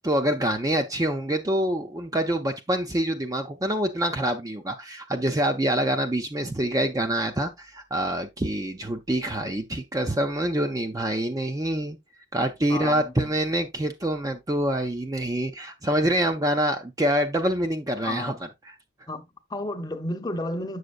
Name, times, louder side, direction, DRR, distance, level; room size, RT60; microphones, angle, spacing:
voice 1, 0.0-12.0 12.3-18.3 18.7-18.8, right 1 dB, 20° right, 0.5 m, -26 dB
voice 2, 12.7-13.3 18.0-18.3 19.1-20.8, left 1 dB, 20° left, 0.8 m, -32 dB
7.8 x 6.4 x 2.4 m
head